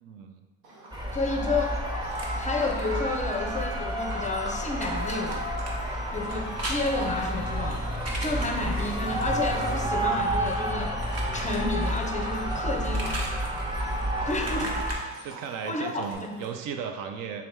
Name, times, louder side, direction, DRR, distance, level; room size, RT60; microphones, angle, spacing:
voice 1, 0.0-0.4 14.4-14.7 15.2-17.5, right 7 dB, 60° right, 6 dB, 0.5 m, -36 dB
Livestock farm animals working animals, 0.6-16.1, right 2 dB, 80° right, 0.9 m, -44 dB
sound 1, 0.9-15.0, equal, 10° right, 0.8 m, -30 dB
voice 2, 1.1-1.8 2.3-5.5 6.1-7.9 8.2-11.0 11.3-13.4 14.3-14.8 15.6-16.4, left 3 dB, 20° left, 3 dB, 0.4 m, -31 dB
sound 2, 2.1-3.8 4.1-12.2 12.5-16.5, right 2 dB, 45° right, 0.9 m, -41 dB
3.4 x 2.9 x 3.5 m, 1.3 s
hypercardioid pair, 60°, 37 cm